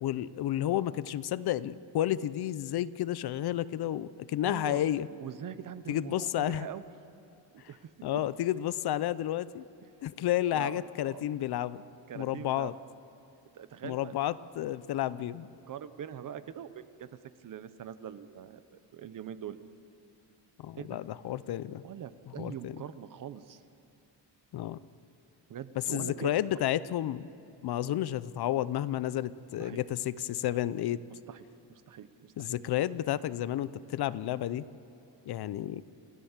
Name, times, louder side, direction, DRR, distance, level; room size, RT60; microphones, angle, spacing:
voice 1, 0.0-5.1 5.9-6.7 8.0-9.6 10.0-11.8 12.2-12.7 13.8-15.5 20.6-21.8 22.4-22.8 24.5-24.8 25.9-27.3 27.6-31.0 32.4-34.6 35.3-35.8, left 12 dB, 60° left, 17 dB, 0.6 m, -31 dB
voice 2, 4.4-4.8 5.2-6.8 7.5-7.9 10.5-11.3 12.1-12.7 13.5-14.2 15.7-17.1 17.4-19.6 20.8-20.9 21.8-23.6 25.5-26.4 29.6-29.8 31.1-32.6, right 9 dB, 45° right, 13 dB, 0.9 m, -43 dB
28.5 x 16.5 x 7.3 m, 2.7 s
cardioid pair, 165°, 43 cm